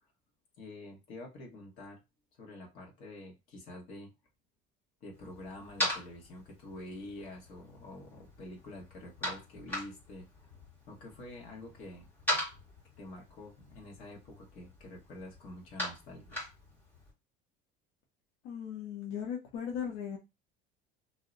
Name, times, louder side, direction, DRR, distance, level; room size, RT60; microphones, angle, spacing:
voice 1, 0.6-2.0 2.4-4.1 5.0-10.3 10.9-12.1 13.0-16.4, left 1 dB, 45° left, 1.2 m, -47 dB
sound 1, 5.1-17.1, left 1 dB, 10° left, 1.6 m, -41 dB
voice 2, 18.4-20.2, left 8 dB, 75° left, 0.8 m, -37 dB
2.7 x 2.1 x 3.7 m
cardioid pair, 175°, 19 cm